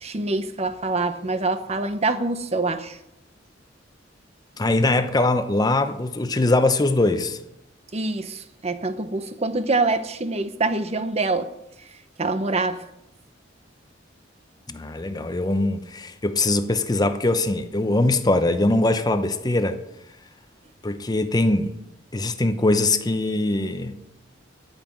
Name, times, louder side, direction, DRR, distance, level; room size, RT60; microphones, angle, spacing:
voice 1, 0.0-3.0 7.9-11.5 12.2-12.8, right 3 dB, 35° right, 0.8 m, -25 dB
voice 2, 4.6-7.4 14.7-19.8 20.8-21.7 22.1-24.0, left 2 dB, 20° left, 0.7 m, -22 dB
13.0 x 5.9 x 9.0 m
head